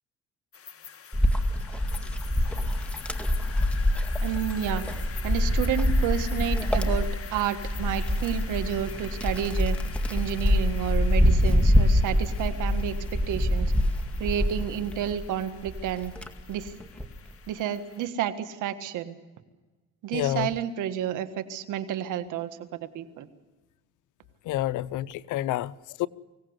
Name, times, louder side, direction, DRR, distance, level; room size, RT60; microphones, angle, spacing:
sound 1, 0.5-18.1, left 7 dB, 50° left, 2.0 m, -45 dB
Wind, 1.1-15.2 15.7-17.2, left 1 dB, 5° left, 2.0 m, -25 dB
voice 1, 4.2-4.9 5.2-9.8 10.1-13.7 14.2-16.1 16.5-16.8 17.5-19.2 20.0-23.3, right 10 dB, 90° right, 1.7 m, -30 dB
voice 2, 20.1-20.5 24.4-26.1, left 14 dB, 90° left, 0.7 m, -29 dB
24.5 x 17.0 x 8.0 m
cardioid pair, 90°, 30 cm